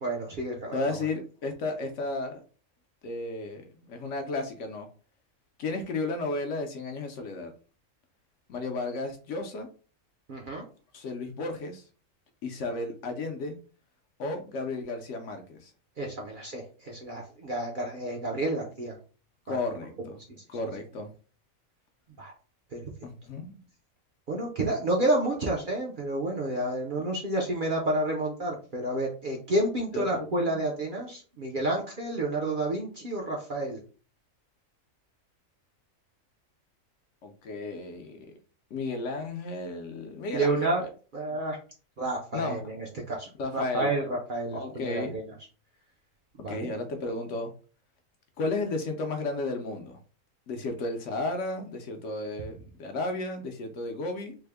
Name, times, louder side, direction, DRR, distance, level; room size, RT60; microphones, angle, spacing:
voice 1, 0.0-0.8 10.3-10.6 16.0-19.0 22.2-22.3 22.7-22.8 24.3-33.8 40.3-40.8 41.1-41.6 42.0-45.3 46.4-46.7, right 1 dB, 50° right, -1 dB, 0.7 m, -30 dB
voice 2, 0.7-2.4 3.0-4.9 5.6-7.5 8.5-9.7 10.9-11.8 12.4-13.6 14.2-15.7 19.5-20.2 20.5-21.1 23.0-23.6 29.9-30.6 37.2-38.3 38.7-40.9 41.3-41.4 42.3-42.6 43.4-43.9 44.5-45.1 46.5-47.5 48.4-50.0 50.5-54.4, left 2 dB, 65° left, 5 dB, 0.9 m, -33 dB
3.5 x 2.1 x 3.3 m, 0.37 s
omnidirectional pair, 1.4 m